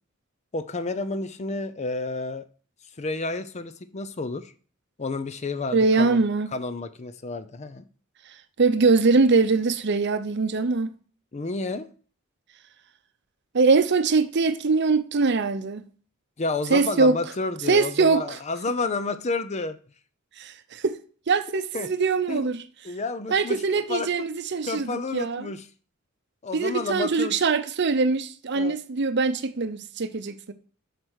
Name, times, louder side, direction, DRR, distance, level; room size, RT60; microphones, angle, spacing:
voice 1, 0.5-2.4 3.0-4.5 5.0-6.2 6.5-7.8 11.3-11.9 16.4-19.8 21.5-21.9 22.3-22.5 22.8-24.1 24.6-25.7 26.4-27.4 28.5-28.8, left 3 dB, 35° left, 0.5 m, -30 dB
voice 2, 5.7-6.5 8.6-11.0 13.5-15.9 16.7-17.2 17.7-18.4 20.4-21.0 21.3-22.6 23.3-25.5 26.5-30.5, right 4 dB, 55° right, 0.7 m, -22 dB
7.6 x 5.1 x 6.4 m
head